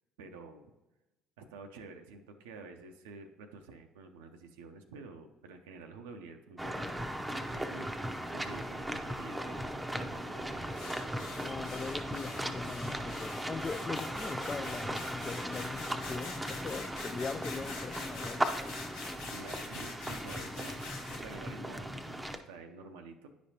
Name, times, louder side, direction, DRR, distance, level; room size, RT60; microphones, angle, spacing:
voice 1, 0.2-0.6 1.4-6.9 7.3-7.9 8.3-10.8 19.3-20.8 21.2-23.3, right 4 dB, 80° right, 0.5 m, -49 dB
sound 1, 6.6-22.4, right 1 dB, 10° right, 0.6 m, -38 dB
sound 2, 10.7-21.4, left 4 dB, 80° left, 1.0 m, -46 dB
voice 2, 11.2-18.8, left 4 dB, 30° left, 0.3 m, -41 dB
9.8 x 5.1 x 2.8 m
hypercardioid pair, 60°, 0 cm